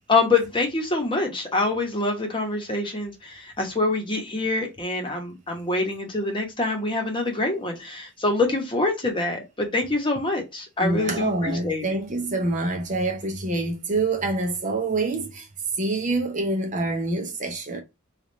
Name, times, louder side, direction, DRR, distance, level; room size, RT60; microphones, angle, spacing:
voice 1, 0.1-11.8, left 3 dB, 25° left, 1.0 m, -25 dB
voice 2, 10.8-15.5 15.8-17.8, right 2 dB, 35° right, 0.6 m, -26 dB
3.5 x 2.4 x 4.0 m
head